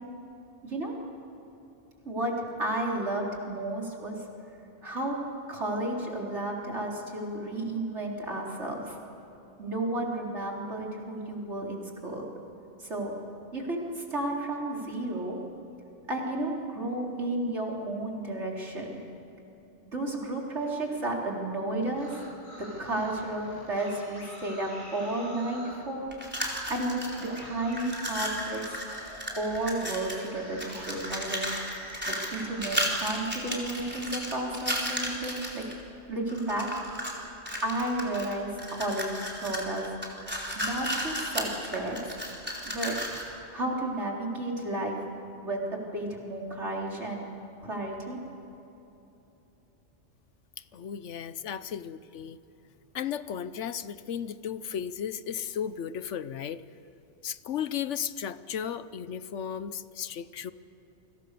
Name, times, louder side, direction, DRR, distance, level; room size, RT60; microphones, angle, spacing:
voice 1, 0.6-0.9 2.0-2.3 2.6-4.2 4.8-5.2 5.5-9.0 9.6-12.2 12.8-13.2 13.5-15.4 16.1-19.0 19.9-22.1 22.5-26.1 26.7-28.8 29.4-31.5 32.1-35.6 36.1-36.7 37.6-40.0 40.5-42.0 42.7-43.1 43.5-45.0 45.4-47.2 47.6-48.2, right 1 dB, 70° right, -1 dB, 4.3 m, -32 dB
sound 1, 21.8-25.8 26.4-26.7 27.1-33.1 33.4-35.2, equal, 25° right, 6.5 m, -46 dB
sound 2, 26.1-27.4 27.7-30.3 30.6-35.7 36.3-37.2 37.5-43.3, equal, 10° right, 4.3 m, -34 dB
voice 2, 50.7-52.4 52.9-56.6 57.2-60.5, left 8 dB, 80° left, 14 dB, 1.1 m, -35 dB
29.5 x 24.5 x 6.8 m, 3.0 s
omnidirectional pair, 1.2 m